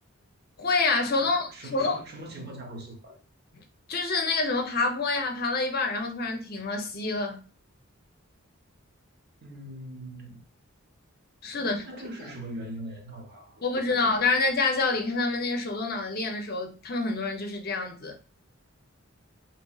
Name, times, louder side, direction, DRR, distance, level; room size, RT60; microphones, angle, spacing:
voice 1, 0.6-2.0 3.9-7.4 11.4-11.8 13.6-18.1, left 3 dB, 45° left, 0.6 m, -27 dB
voice 2, 1.2-3.2 9.4-10.4 11.6-14.3, right 1 dB, 45° right, 0.9 m, -42 dB
4.1 x 3.0 x 2.3 m
head